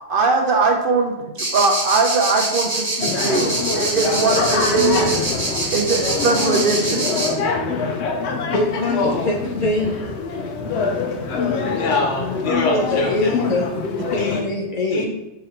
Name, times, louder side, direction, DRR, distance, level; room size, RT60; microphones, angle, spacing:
voice 1, 0.1-7.1, right 4 dB, 55° right, 3 dB, 0.8 m, -21 dB
sound 1, 1.4-7.3, right 2 dB, 20° right, 1.6 m, -24 dB
sound 2, 3.0-14.4, left 4 dB, 70° left, 0.8 m, -24 dB
voice 2, 8.5-9.9 12.7-13.7 14.0-15.1, left 2 dB, 55° left, 0 dB, 0.4 m, -23 dB
voice 3, 11.7-13.3 14.2-14.5 14.9-15.1, left 2 dB, 90° left, 1 dB, 1.2 m, -23 dB
3.8 x 3.2 x 4.3 m, 0.98 s
omnidirectional pair, 1.2 m